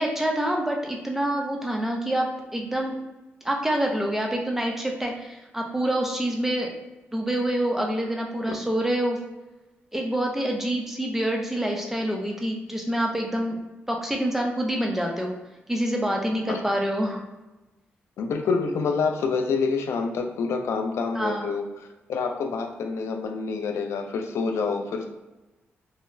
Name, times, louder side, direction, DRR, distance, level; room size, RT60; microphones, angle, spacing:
voice 1, 0.0-2.3 2.5-3.0 3.4-6.7 7.1-9.2 9.9-13.6 13.9-15.3 15.7-17.2 21.1-21.5, right 1 dB, 5° right, 0 dB, 0.5 m, -26 dB
voice 2, 18.2-25.1, left 4 dB, 85° left, 4 dB, 0.4 m, -27 dB
3.9 x 2.0 x 2.5 m, 1.1 s
cardioid pair, 100°, 4 cm